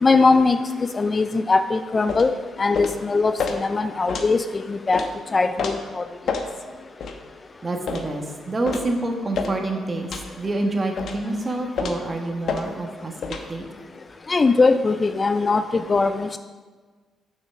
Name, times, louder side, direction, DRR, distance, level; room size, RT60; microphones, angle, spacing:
voice 1, 0.0-6.1 14.3-16.4, left 3 dB, 30° left, 9 dB, 0.3 m, -21 dB
sound 1, 2.1-2.3 2.7-3.0 3.4-3.6 4.1-4.3 4.9-5.1 5.6-5.8 6.3-6.5 7.0-7.2 7.9-8.1 8.7-8.9 9.3-9.6 10.1-10.3 11.0-11.2 11.8-12.0 12.5-12.6 13.2-13.4, left 5 dB, 65° left, 0.9 m, -28 dB
voice 2, 7.5-13.1 13.5-13.6, right 2 dB, 25° right, 2 dB, 1.4 m, -27 dB
6.5 x 6.2 x 6.2 m, 1.4 s
cardioid pair, 90°, 0 cm